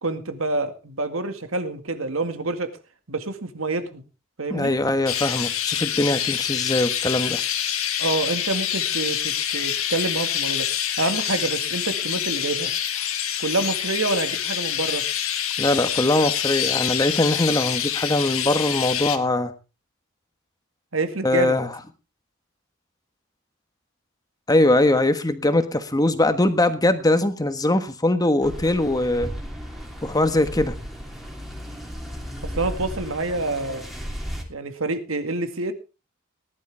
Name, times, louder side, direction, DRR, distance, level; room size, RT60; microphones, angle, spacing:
voice 1, 0.0-2.7 3.1-4.0 4.4-4.7 8.0-10.7 11.0-12.7 13.4-15.0 20.9-21.6 32.5-33.8 34.5-35.7, right 2 dB, 75° right, 8 dB, 2.0 m, -27 dB
voice 2, 4.5-7.4 15.6-19.5 21.2-21.7 24.5-29.3 30.0-30.7, left 1 dB, 20° left, 10 dB, 1.4 m, -21 dB
Chirp tweet, 5.1-19.2, left 10 dB, 90° left, 1.7 m, -26 dB
sound 1, 28.4-34.4, equal, ahead, 3.0 m, -35 dB
18.5 x 12.0 x 3.5 m, 0.30 s
head